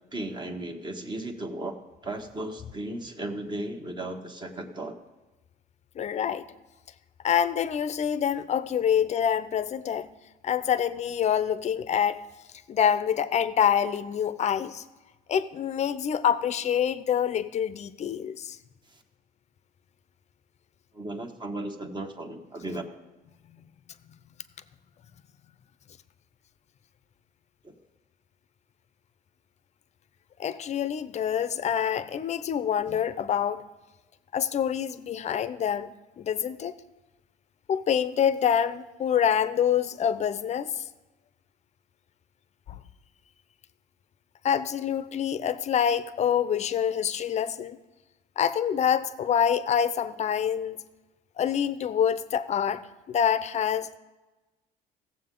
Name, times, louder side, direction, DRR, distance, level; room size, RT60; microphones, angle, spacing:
voice 1, 0.1-5.0 18.9-19.0 20.9-22.8 27.6-27.7, right 1 dB, 25° right, 1.2 m, -36 dB
voice 2, 6.0-6.4 7.2-10.1 10.4-12.2 12.7-14.8 15.3-18.6 30.4-33.6 34.3-35.9 36.2-36.7 37.7-40.8 42.7-42.8 44.4-47.8 48.4-50.8 51.4-52.8 53.1-54.0, left 8 dB, 40° left, 0.6 m, -26 dB
16.5 x 7.4 x 3.8 m
cardioid pair, 110°, 17 cm